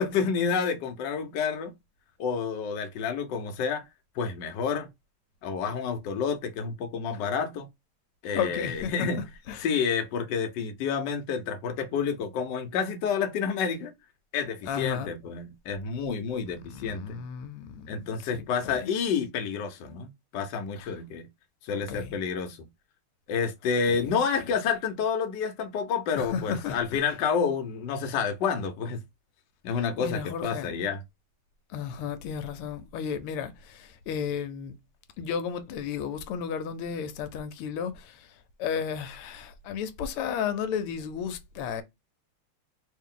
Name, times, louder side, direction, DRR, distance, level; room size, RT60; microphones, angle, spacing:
voice 1, 0.0-1.7 2.2-3.8 4.1-4.9 5.4-7.7 8.2-9.2 9.6-13.9 14.3-17.2 17.9-21.3 21.6-22.7 23.3-29.0 29.6-31.0, left 6 dB, 65° left, 1.2 m, -29 dB
voice 2, 8.3-9.1 9.5-9.7 14.7-15.1 16.7-18.9 20.8-20.9 21.7-22.2 23.9-24.2 26.2-27.0 30.0-30.7 31.7-34.7 35.2-38.3 38.6-41.8, left 7 dB, 90° left, 1.5 m, -33 dB
3.5 x 2.7 x 3.7 m
omnidirectional pair, 2.4 m